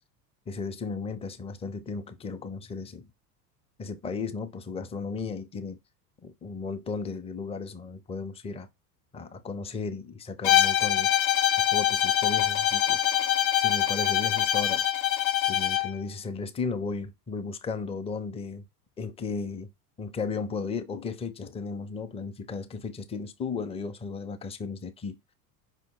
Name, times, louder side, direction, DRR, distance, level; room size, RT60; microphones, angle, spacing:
voice 1, 0.5-3.1 3.8-5.8 6.2-8.7 9.1-11.1 11.6-13.0 13.6-14.9 15.5-18.7 19.0-19.7 20.0-25.2, left 4 dB, 15° left, 0.5 m, -35 dB
Bowed string instrument, 10.4-15.9, left 11 dB, 50° left, 0.7 m, -24 dB
5.2 x 2.0 x 4.6 m
hypercardioid pair, 75°, 49 cm